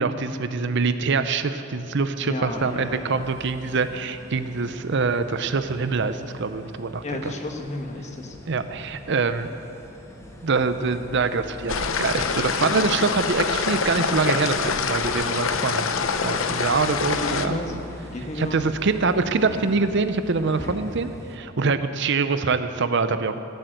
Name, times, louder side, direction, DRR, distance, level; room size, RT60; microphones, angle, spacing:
voice 1, 0.0-7.3 8.5-9.5 10.4-15.9 16.2-17.6 18.4-23.4, right 4 dB, 60° right, 11 dB, 0.6 m, -24 dB
voice 2, 2.2-3.2 7.0-8.4 17.2-17.9 18.1-18.7, left 1 dB, 35° left, 4 dB, 1.3 m, -32 dB
sound 1, 2.5-21.4, left 1 dB, 15° left, 1.4 m, -42 dB
sound 2, 11.7-17.5, left 5 dB, 80° left, 0.8 m, -25 dB
16.5 x 8.0 x 8.0 m, 2.8 s
head